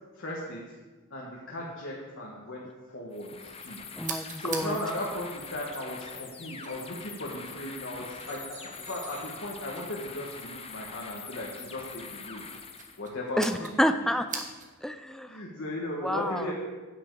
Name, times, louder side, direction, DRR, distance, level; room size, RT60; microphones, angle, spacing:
voice 1, 0.1-0.7 1.1-3.8 4.4-12.5 13.0-14.1 15.3-16.5, left 1 dB, 70° left, -4 dB, 1.5 m, -37 dB
sound 1, 3.1-13.0, left 5 dB, 30° left, 0.8 m, -44 dB
voice 2, 4.0-4.8 13.4-14.4 14.8-15.4 16.0-16.5, equal, 5° left, 9 dB, 0.4 m, -29 dB
sound 2, 4.0-14.9, right 5 dB, 40° right, 1.2 m, -45 dB
sound 3, 8.2-10.1, right 2 dB, 85° right, 3.2 m, -51 dB
9.2 x 8.6 x 4.8 m, 1.3 s
head